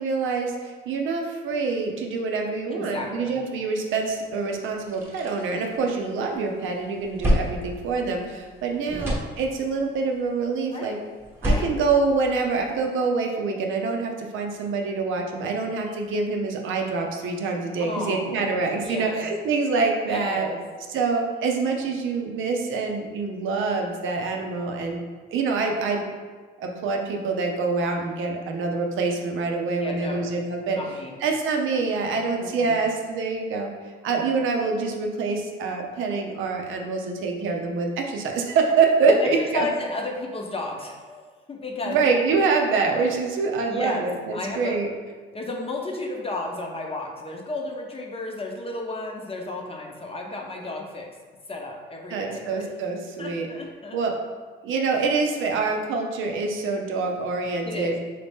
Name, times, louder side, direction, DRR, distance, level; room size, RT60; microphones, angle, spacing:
voice 1, 0.0-11.0 11.4-20.5 20.9-25.0 25.3-26.1 26.6-30.8 31.2-33.7 34.0-39.7 41.9-44.9 52.1-53.5 53.9-54.2 54.6-58.0, right 4 dB, 80° right, 2 dB, 0.6 m, -25 dB
voice 2, 2.7-3.4 8.9-9.1 10.7-11.0 11.4-11.7 17.8-19.3 20.1-20.6 29.8-30.3 30.7-31.1 32.4-32.8 39.1-42.0 43.7-44.8 45.3-51.1 51.5-52.7 53.2-54.0 57.6-58.0, left 2 dB, 30° left, 1 dB, 0.7 m, -33 dB
sound 1, 4.2-4.3 4.7-6.4 6.7-8.6 8.8-9.9 11.2-12.8, equal, 10° right, 1.0 m, -28 dB
4.0 x 2.7 x 3.5 m, 1.4 s
cardioid pair, 90°, 20 cm